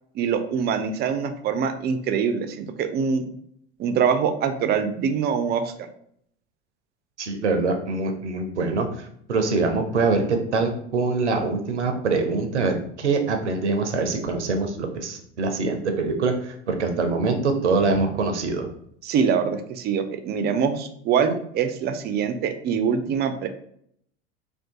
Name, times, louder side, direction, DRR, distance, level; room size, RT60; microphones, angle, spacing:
voice 1, 0.1-3.3 3.8-5.9 19.0-23.5, right 6 dB, 30° right, 8 dB, 0.4 m, -24 dB
voice 2, 7.2-18.7, right 3 dB, 90° right, 5 dB, 0.6 m, -24 dB
2.6 x 2.4 x 3.5 m, 0.69 s
hypercardioid pair, 80°, 34 cm